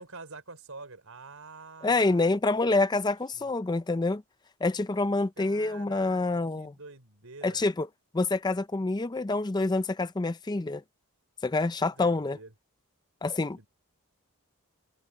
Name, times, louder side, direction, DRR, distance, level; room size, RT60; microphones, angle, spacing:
voice 1, 0.0-2.4 2.6-2.8 3.3-3.5 5.4-6.2 6.6-7.6 11.8-12.5 13.6-13.7, right 3 dB, 70° right, 4.5 m, -47 dB
voice 2, 1.8-4.2 4.6-6.7 7.4-7.9 8.1-10.8 11.4-12.4 13.2-13.6, left 3 dB, 20° left, 0.4 m, -27 dB
head